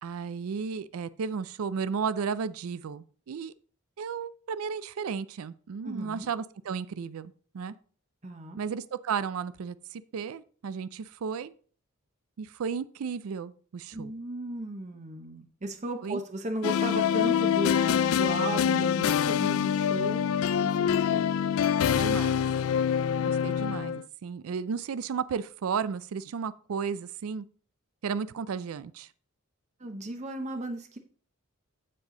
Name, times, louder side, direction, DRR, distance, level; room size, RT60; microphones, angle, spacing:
voice 1, 0.0-3.5 4.0-7.8 8.6-11.5 12.4-14.1 16.0-16.2 21.9-22.4 23.2-27.5 28.0-29.1, right 6 dB, 75° right, 0.4 m, -34 dB
voice 2, 5.8-6.3 8.2-8.6 13.9-20.3 20.6-21.2 29.8-31.0, right 2 dB, 30° right, 0.8 m, -36 dB
sound 1, 16.6-24.0, left 8 dB, 70° left, 0.3 m, -25 dB
7.6 x 7.4 x 3.7 m
head